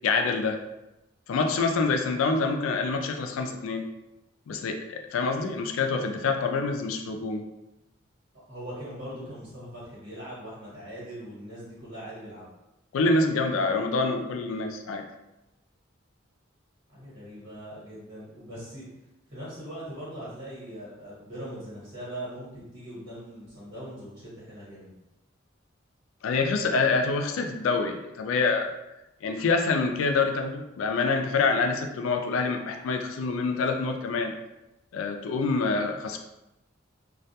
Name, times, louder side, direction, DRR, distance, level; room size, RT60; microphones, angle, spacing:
voice 1, 0.0-0.6 1.3-3.8 4.5-7.4 12.9-15.0 26.2-28.7 29.2-34.3 34.9-36.2, left 4 dB, 85° left, 5 dB, 0.3 m, -26 dB
voice 2, 8.5-12.5 16.9-18.8 19.3-24.9, equal, 65° right, -10 dB, 1.2 m, -41 dB
2.3 x 2.1 x 2.7 m, 0.94 s
head